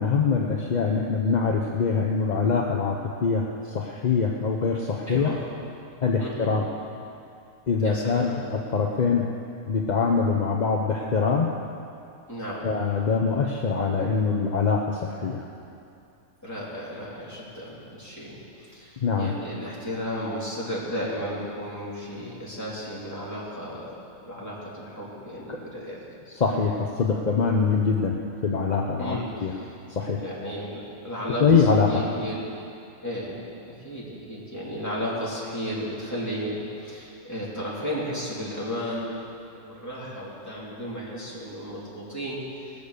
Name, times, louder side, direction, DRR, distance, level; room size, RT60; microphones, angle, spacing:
voice 1, 0.0-5.3 6.0-6.6 7.7-9.3 9.7-11.5 12.6-15.4 19.0-19.3 25.5-25.6 26.3-28.2 28.4-29.5 29.9-30.2 31.4-32.0, left 5 dB, 40° left, 0 dB, 0.7 m, -24 dB
voice 2, 5.1-5.4 6.2-6.5 7.8-8.4 12.3-12.7 16.4-23.9 24.2-26.0 29.0-29.7 30.2-32.4 33.0-39.1 39.5-42.7, equal, 10° left, -8 dB, 3.4 m, -34 dB
19.0 x 7.0 x 6.6 m, 2.6 s
omnidirectional pair, 1.5 m